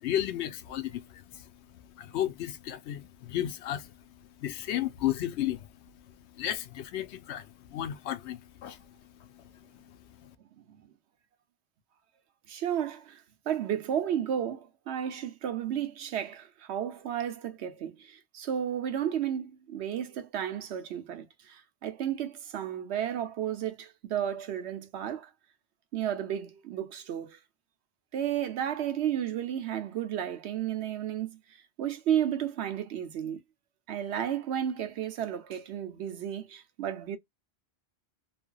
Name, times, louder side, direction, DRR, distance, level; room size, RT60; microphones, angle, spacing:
voice 1, 0.0-1.4 2.0-3.9 4.4-5.7 6.4-8.8 10.2-10.3, left 12 dB, 80° left, 0.9 m, -33 dB
voice 2, 12.5-13.2 13.5-25.3 25.9-27.4 28.1-31.4 31.8-33.4 33.9-37.2, right 10 dB, 80° right, 0.9 m, -33 dB
3.3 x 2.2 x 2.2 m
omnidirectional pair, 1.1 m